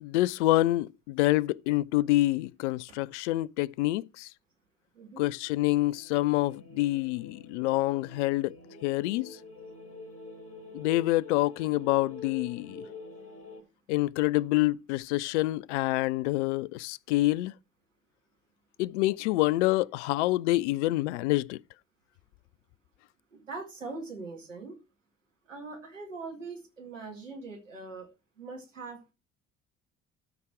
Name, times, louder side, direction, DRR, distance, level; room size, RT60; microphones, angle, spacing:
voice 1, 0.0-4.3 5.2-8.5 8.8-9.3 10.7-12.8 13.9-17.5 18.8-21.6, left 18 dB, 70° left, 0.5 m, -27 dB
voice 2, 4.9-5.3 23.3-24.8 25.5-28.1 28.4-29.1, right 3 dB, 85° right, 2.3 m, -42 dB
sound 1, 5.2-13.6, left 3 dB, 35° left, 3.7 m, -47 dB
13.0 x 6.0 x 4.5 m
figure-of-eight pair, 50°, 37 cm